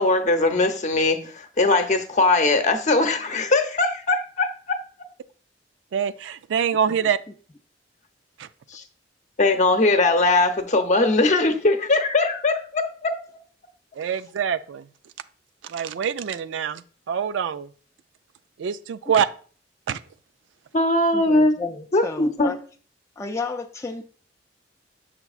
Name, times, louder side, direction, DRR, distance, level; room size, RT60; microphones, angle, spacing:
voice 1, 0.0-4.8 8.7-8.8 9.4-13.1 20.7-21.5 21.9-22.5, left 2 dB, 40° left, 0.7 m, -20 dB
voice 2, 5.9-7.2 8.4-8.5 14.0-14.8 15.7-16.8 17.1-17.7 18.6-19.3 19.9-20.0, right 7 dB, 85° right, 0.3 m, -25 dB
voice 3, 21.1-22.6 23.2-24.0, left 4 dB, 15° left, 0.4 m, -32 dB
6.8 x 5.7 x 2.4 m
head